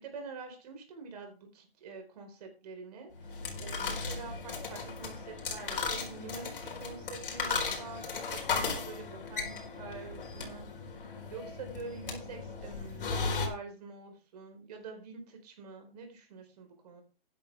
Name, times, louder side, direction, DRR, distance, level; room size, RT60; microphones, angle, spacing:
voice 1, 0.0-10.7 11.3-13.1 13.4-17.0, right 4 dB, 40° right, 4 dB, 4.5 m, -46 dB
sound 1, 3.2-13.5, left 4 dB, 60° left, 4.3 m, -36 dB
12.5 x 10.0 x 3.5 m, 0.32 s
hypercardioid pair, 160°, 31 cm